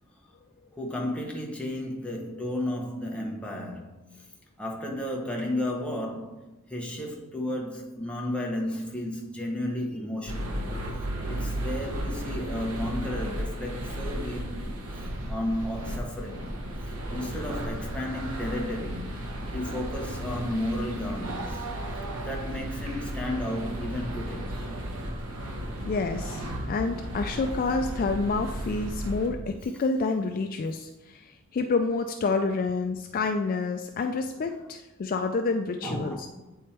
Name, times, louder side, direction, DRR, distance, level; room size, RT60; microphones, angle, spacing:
voice 1, 0.8-4.2 4.6-10.7 11.3-14.8 15.3-16.5 17.1-21.7 22.2-24.6 35.8-36.5, left 1 dB, 5° left, 0.9 m, -33 dB
sound 1, 10.3-29.3, equal, 85° right, 1.1 m, -34 dB
voice 2, 25.8-36.2, left 3 dB, 40° left, 0.3 m, -28 dB
8.5 x 3.5 x 4.3 m
head